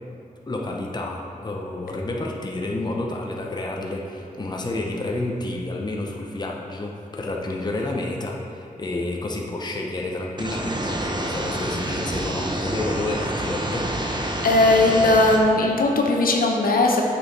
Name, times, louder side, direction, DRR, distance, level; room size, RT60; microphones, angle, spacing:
voice 1, 0.5-13.9, left 2 dB, 30° left, -1 dB, 0.8 m, -29 dB
sound 1, 10.4-15.4, right 1 dB, 30° right, 0.8 m, -28 dB
voice 2, 14.4-17.0, left 2 dB, 75° left, 0 dB, 0.9 m, -18 dB
8.4 x 6.4 x 4.0 m, 2.7 s
wide cardioid pair, 105°, 15 cm